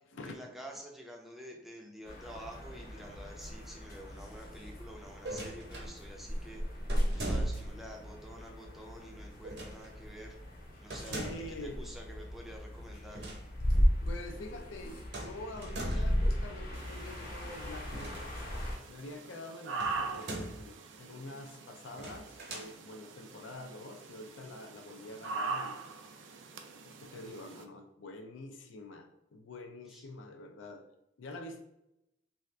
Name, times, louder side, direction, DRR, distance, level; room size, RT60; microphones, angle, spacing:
voice 1, 0.2-6.6 7.1-10.4 10.8-13.3 15.9-16.1 20.0-20.4 29.9-30.1, equal, ahead, 0 dB, 0.4 m, -49 dB
sound 1, 2.0-18.8, equal, 50° left, 0.7 m, -36 dB
sound 2, 5.2-5.9 6.9-7.8 9.4-9.9 10.9-11.6 13.0-13.4 13.7-13.8 15.1-16.2 17.8-18.7 19.8-20.7 21.9-22.7, right 2 dB, 60° right, 0.8 m, -41 dB
voice 2, 10.9-11.8 14.1-18.3 18.9-30.8 31.2-31.6, left 2 dB, 85° left, 5 dB, 0.5 m, -46 dB
sound 3, 16.7-27.6, right 4 dB, 80° right, 0.4 m, -42 dB
2.7 x 2.4 x 3.2 m, 0.83 s
head